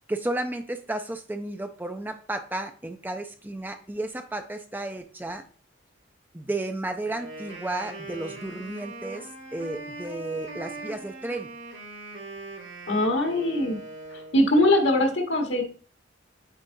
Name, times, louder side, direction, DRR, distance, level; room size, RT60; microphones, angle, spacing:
voice 1, 0.1-5.4 6.3-11.5, right 2 dB, 10° right, 6 dB, 0.4 m, -33 dB
Wind instrument woodwind instrument, 7.0-14.7, right 2 dB, 80° right, 2.1 m, -41 dB
voice 2, 12.9-13.8 14.1-15.6, left 1 dB, 60° left, 3 dB, 1.6 m, -22 dB
8.3 x 5.0 x 2.6 m, 0.40 s
head